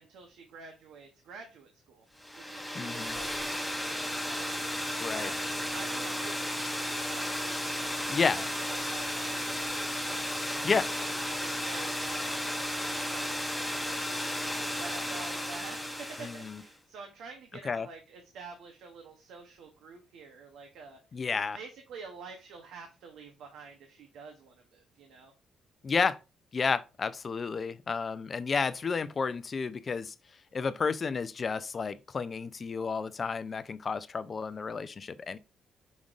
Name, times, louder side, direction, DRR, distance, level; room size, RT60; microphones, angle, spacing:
voice 1, 0.0-2.0 2.3-4.5 5.1-10.3 10.6-12.3 12.9-14.3 14.7-21.0 21.5-25.3, right 4 dB, 85° right, 0.8 m, -48 dB
sound 1, 2.2-16.7, equal, ahead, 0.8 m, -34 dB
voice 2, 2.7-3.2 5.0-5.3 8.1-8.4 10.6-10.9 16.2-16.6 17.6-17.9 21.1-21.6 25.8-26.2 26.5-30.1 30.5-35.4, left 5 dB, 40° left, 0.4 m, -31 dB
5.1 x 3.7 x 2.4 m
cardioid pair, 90°, 0 cm